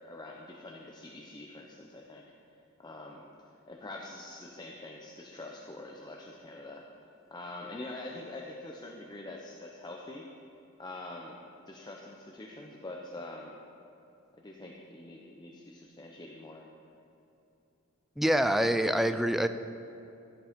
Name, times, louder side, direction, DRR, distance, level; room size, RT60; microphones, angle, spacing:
voice 1, 0.0-2.2 2.8-3.3 3.7-6.8 7.3-10.3 10.8-13.6 14.4-16.6, left 2 dB, 20° left, -1 dB, 0.7 m, -45 dB
voice 2, 18.2-19.5, equal, ahead, 9 dB, 0.3 m, -25 dB
13.5 x 7.7 x 5.1 m, 2.9 s
head